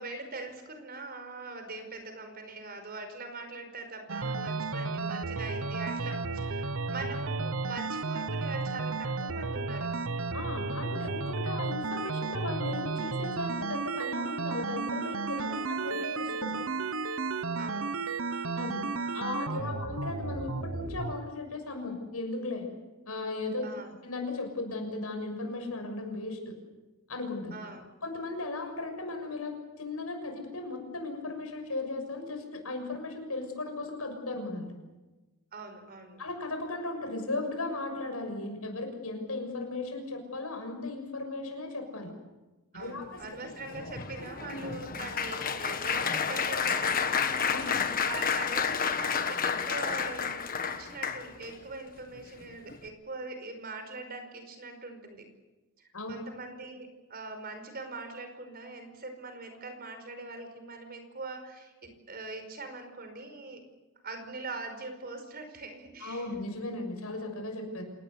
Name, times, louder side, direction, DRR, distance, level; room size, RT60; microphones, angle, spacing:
voice 1, 0.0-9.9 15.4-16.1 17.6-17.9 19.5-19.8 23.6-23.9 27.5-27.9 35.5-36.2 42.7-47.0 48.0-50.3 50.6-55.3 56.1-63.6 64.0-66.3, right 3 dB, 45° right, 7 dB, 5.0 m, -42 dB
sound 1, 4.1-21.2, right 3 dB, 65° right, 1.1 m, -33 dB
voice 2, 10.3-16.6 18.6-18.8 19.1-22.7 23.1-26.5 27.1-27.5 28.0-34.7 36.2-42.1 42.8-43.2 44.3-44.6 47.5-47.9 55.9-56.1 66.0-67.8, left 2 dB, 80° left, 5 dB, 6.7 m, -36 dB
Applause, 43.2-51.5 52.2-52.4 52.7-52.9, left 6 dB, 40° left, 1.5 m, -31 dB
27.5 x 19.0 x 8.3 m, 1.2 s
head